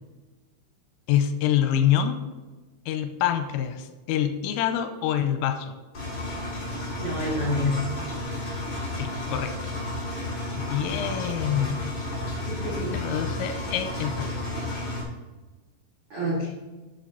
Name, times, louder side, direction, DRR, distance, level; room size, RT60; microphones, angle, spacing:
voice 1, 1.1-2.2 2.9-5.7 8.9-9.5 10.5-11.9 12.9-14.5, left 10 dB, 90° left, 8 dB, 3.3 m, -26 dB
Engine, 5.9-15.0, left 1 dB, 25° left, 2.9 m, -32 dB
voice 2, 7.0-7.7 10.9-11.1 12.2-12.9 16.1-16.5, left 1 dB, 85° right, -5 dB, 1.2 m, -29 dB
13.0 x 7.5 x 4.0 m, 1.2 s
omnidirectional pair, 5.9 m